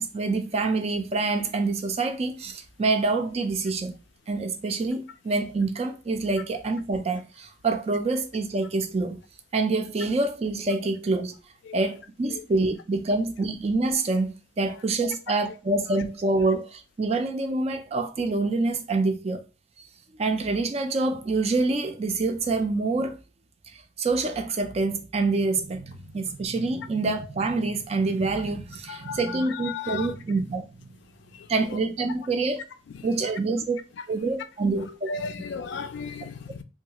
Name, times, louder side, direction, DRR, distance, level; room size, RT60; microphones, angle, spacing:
voice 1, 0.0-4.0 4.3-9.2 9.5-11.4 11.7-19.4 19.8-19.9 20.2-23.2 23.7-31.0 31.5-32.6 33.0-33.8 34.1-35.1, right 3 dB, 30° right, 0.3 m, -26 dB
voice 2, 28.9-30.2 31.3-31.8 32.9-33.3 34.0-34.1 35.1-36.6, left 5 dB, 65° left, 0.3 m, -36 dB
3.1 x 2.3 x 2.8 m
head